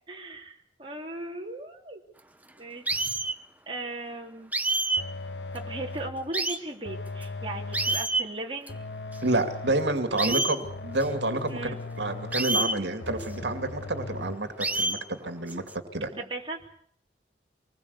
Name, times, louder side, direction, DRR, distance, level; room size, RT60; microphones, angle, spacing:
voice 1, 0.1-2.0 2.6-3.1 3.7-4.5 5.5-8.8 10.1-10.3 11.5-11.8 16.1-16.6, right 2 dB, 30° right, 0 dB, 3.2 m, -37 dB
sound 1, 2.9-3.4 4.5-5.0 5.6-5.7 6.3-6.6 7.2-7.3 7.7-8.2 8.7-8.8 9.1-9.2 10.2-10.6 11.0-11.1 12.3-12.8 13.2-13.3 14.6-15.0 15.5-15.7, right 2 dB, 10° right, 1.0 m, -27 dB
sound 2, 5.0-6.3 6.8-8.2 8.7-10.1 10.6-12.6 13.0-14.4, left 3 dB, 75° left, 1.0 m, -38 dB
voice 2, 9.2-11.6 12.0-15.6 15.9-16.1, right 2 dB, 75° right, 8 dB, 2.4 m, -29 dB
25.5 x 20.5 x 8.3 m, 0.63 s
head